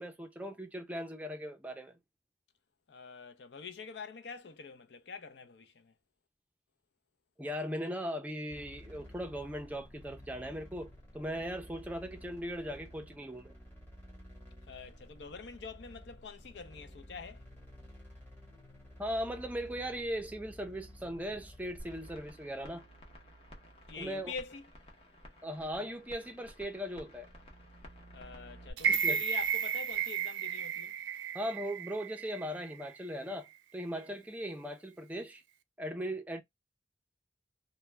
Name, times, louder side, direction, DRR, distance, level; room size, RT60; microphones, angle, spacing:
voice 1, 0.0-2.0 7.4-13.5 19.0-22.8 24.0-24.3 25.4-27.3 28.9-29.2 31.3-33.5 33.7-35.4 35.8-36.4, equal, 10° right, 0.4 m, -38 dB
voice 2, 2.9-5.9 14.7-17.4 23.9-24.6 28.1-30.9, left 5 dB, 80° left, 0.5 m, -45 dB
sound 1, 8.5-22.2, equal, 10° left, 1.1 m, -53 dB
sound 2, 21.8-28.7, equal, 35° left, 0.7 m, -53 dB
sound 3, 28.8-32.9 33.3-33.4, right 7 dB, 85° right, 0.3 m, -33 dB
2.3 x 2.1 x 3.1 m
head